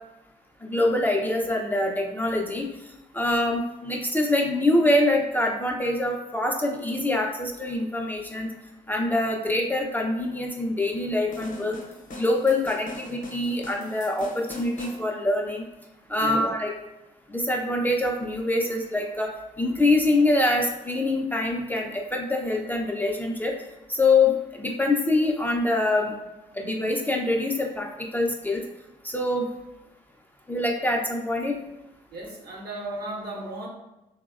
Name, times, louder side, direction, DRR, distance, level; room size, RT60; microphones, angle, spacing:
voice 1, 0.6-2.7 3.1-8.5 8.9-11.8 12.1-15.6 16.1-16.7 17.3-19.3 19.6-23.6 23.9-26.1 26.5-28.6 29.0-29.5 30.5-31.6, left 2 dB, 10° left, 0 dB, 0.5 m, -24 dB
sound 1, 11.3-15.0, left 1 dB, 50° left, 0.8 m, -41 dB
voice 2, 16.2-16.5 32.1-33.7, right 2 dB, 60° right, -1 dB, 0.8 m, -34 dB
3.3 x 2.0 x 2.4 m, 0.97 s
hypercardioid pair, 45°, 18 cm